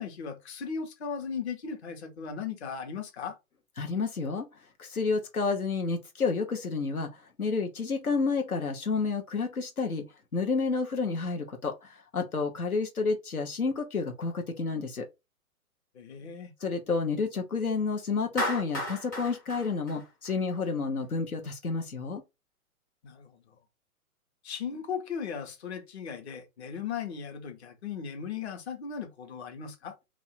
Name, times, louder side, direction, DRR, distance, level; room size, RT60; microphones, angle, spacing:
voice 1, 0.0-3.4 15.9-16.5 23.0-23.5 24.4-30.0, left 6 dB, 50° left, 1.0 m, -37 dB
voice 2, 3.8-4.5 4.8-10.1 10.3-15.1 16.6-22.2, left 4 dB, 80° left, 0.9 m, -30 dB
Clapping, 18.4-20.7, left 1 dB, 15° left, 0.5 m, -34 dB
2.9 x 2.6 x 4.2 m
figure-of-eight pair, 120°, 43 cm